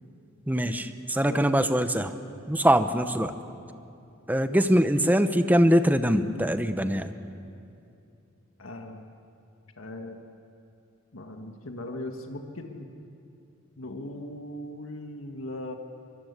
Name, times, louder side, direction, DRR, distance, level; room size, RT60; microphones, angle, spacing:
voice 1, 0.5-2.1 2.5-3.3 4.3-7.1, equal, 10° right, 9 dB, 0.9 m, -23 dB
voice 2, 8.6-9.1 9.8-10.2 11.1-12.9 13.8-15.7, left 1 dB, 75° left, 4 dB, 1.7 m, -38 dB
24.0 x 22.5 x 8.2 m, 2.6 s
head